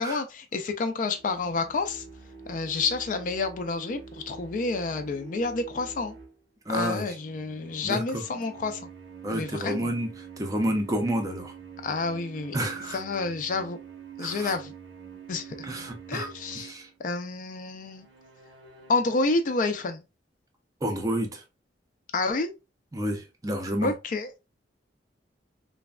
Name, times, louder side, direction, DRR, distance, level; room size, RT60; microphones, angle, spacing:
voice 1, 0.0-2.0 2.5-6.1 6.7-8.8 9.3-9.9 11.8-12.6 12.9-13.8 14.2-14.7 15.3-15.7 16.1-16.7 17.0-18.1 18.9-20.0 22.1-22.5 23.8-24.3, left 3 dB, 45° left, 0.3 m, -29 dB
sound 1, 1.1-6.4 7.2-17.0 17.8-19.2, right 6 dB, 90° right, 0.7 m, -46 dB
voice 2, 6.7-7.1 7.8-8.2 9.2-10.1 10.4-11.5 12.5-13.0 14.2-14.5 15.6-16.3 16.5-16.9 20.8-21.4 22.9-23.9, right 1 dB, 20° right, 0.4 m, -29 dB
3.3 x 2.1 x 2.2 m
head